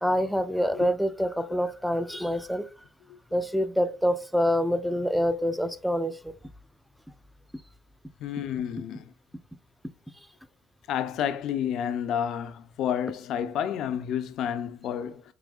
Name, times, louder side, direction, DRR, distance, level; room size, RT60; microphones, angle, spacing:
voice 1, 0.0-2.7 3.3-6.3, equal, ahead, 0.4 m, -26 dB
voice 2, 8.2-9.1 10.9-15.2, left 9 dB, 60° left, 0.4 m, -30 dB
4.8 x 3.0 x 2.4 m
supercardioid pair, 85°, 0 cm